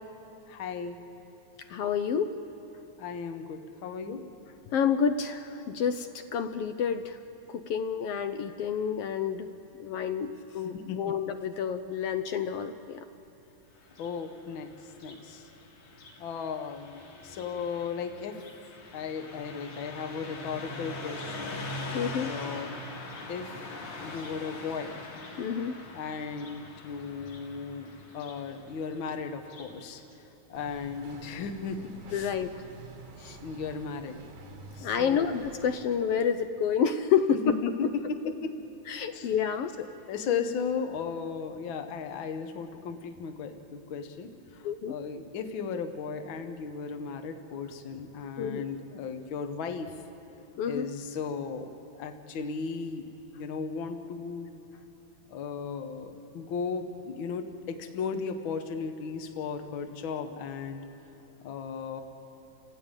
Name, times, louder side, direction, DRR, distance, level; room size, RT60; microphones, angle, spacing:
voice 1, 0.5-1.0 3.0-4.2 10.6-11.1 14.0-15.5 16.2-18.4 18.9-21.6 22.2-22.8 23.3-23.6 24.0-25.0 25.9-32.3 33.4-34.2 34.7-35.3 37.6-38.6 39.1-39.3 39.8-50.0 50.7-53.1 53.4-54.5 55.3-60.8 61.4-62.0, left 5 dB, 55° left, 7 dB, 1.6 m, -36 dB
voice 2, 1.7-2.3 4.7-7.2 7.5-9.5 9.8-13.0 21.9-22.3 25.4-25.7 32.1-32.6 33.2-33.4 34.8-37.6 37.8-37.9 38.9-39.7 44.6-44.9 48.4-48.7 50.6-50.9, left 7 dB, 75° left, 9 dB, 1.4 m, -29 dB
Car passing by, 13.8-29.8, left 2 dB, 90° left, 3.7 m, -43 dB
sound 1, 30.5-35.8, right 3 dB, 90° right, 3.4 m, -48 dB
30.0 x 15.0 x 8.9 m, 2.9 s
omnidirectional pair, 3.4 m